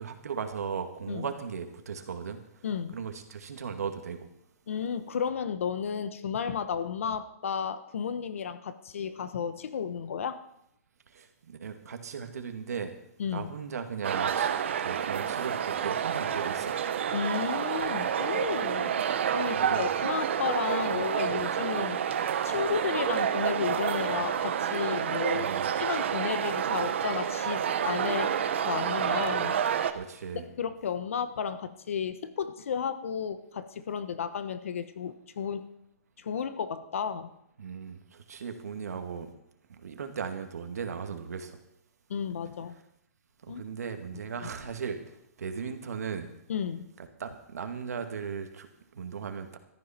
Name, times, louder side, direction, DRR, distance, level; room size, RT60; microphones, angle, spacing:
voice 1, 0.0-2.4 2.9-4.3 11.1-12.9 13.3-16.7 19.5-19.9 20.9-21.0 25.3-25.7 29.9-30.4 37.6-39.3 39.7-41.6 43.4-45.0 45.4-46.3 47.2-48.7 48.9-49.6, right 6 dB, 80° right, 6 dB, 2.1 m, -37 dB
voice 2, 2.6-3.0 4.7-10.4 13.2-13.5 17.1-18.9 19.3-22.0 22.4-25.5 25.8-28.3 28.6-29.6 30.4-35.7 36.2-37.3 42.1-42.7 43.5-43.7 44.4-44.5 46.5-46.9, left 7 dB, 60° left, 13 dB, 1.1 m, -33 dB
sound 1, 14.0-29.9, right 8 dB, 50° right, 1.1 m, -29 dB
16.0 x 14.0 x 4.4 m, 0.77 s
hypercardioid pair, 175°, 8 cm